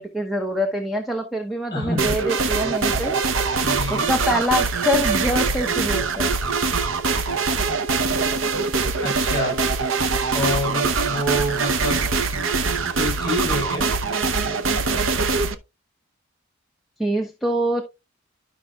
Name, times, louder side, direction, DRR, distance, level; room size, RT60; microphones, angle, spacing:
voice 1, 0.0-3.1 3.9-6.3 17.0-17.8, equal, ahead, 3 dB, 0.8 m, -25 dB
voice 2, 1.7-2.2 3.6-4.1 9.0-9.6 10.3-12.0 12.9-13.9, left 1 dB, 20° left, 1 dB, 5.6 m, -27 dB
sound 1, 2.0-15.5, right 4 dB, 70° right, 0.8 m, -23 dB
13.0 x 5.5 x 2.3 m, 0.24 s
head